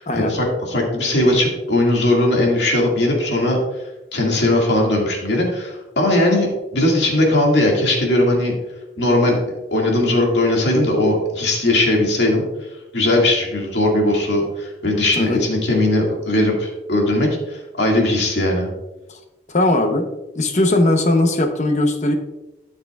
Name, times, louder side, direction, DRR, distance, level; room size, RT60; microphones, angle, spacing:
voice 1, 0.0-3.6 4.1-8.5 9.0-9.4 9.7-12.4 12.9-18.7, left 1 dB, 85° left, -1 dB, 2.2 m, -18 dB
voice 2, 19.5-20.1 20.3-22.1, left 1 dB, 40° left, 5 dB, 0.9 m, -18 dB
12.5 x 6.5 x 2.4 m, 1.0 s
head